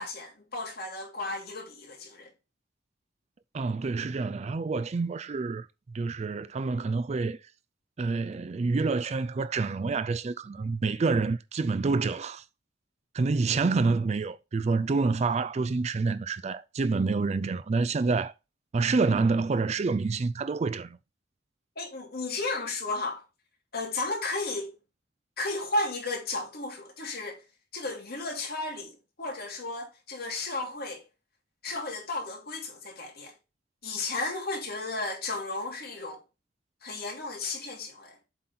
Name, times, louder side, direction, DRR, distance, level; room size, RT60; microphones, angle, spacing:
voice 1, 0.0-2.3 21.8-23.2 23.7-24.7 25.4-27.4 27.7-31.0 31.6-33.3 33.8-36.2 36.8-38.2, left 2 dB, 55° left, 2.8 m, -34 dB
voice 2, 3.5-7.4 8.0-12.4 13.1-18.3 18.7-21.0, right 4 dB, 35° right, 0.3 m, -27 dB
7.5 x 4.0 x 4.2 m
head